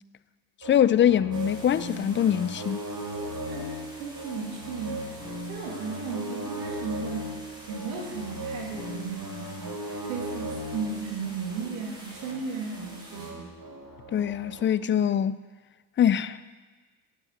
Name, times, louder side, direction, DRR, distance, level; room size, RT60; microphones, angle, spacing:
voice 1, 0.6-2.9 14.1-15.4 16.0-16.6, left 9 dB, 25° left, 0.3 m, -23 dB
sound 1, 0.6-14.6, right 1 dB, 40° right, 4.1 m, -38 dB
sound 2, 1.3-13.3, equal, 10° right, 3.7 m, -48 dB
voice 2, 3.5-7.3 7.7-13.5, right 5 dB, 90° right, 2.3 m, -35 dB
8.9 x 7.9 x 7.9 m
supercardioid pair, 70°, 50 cm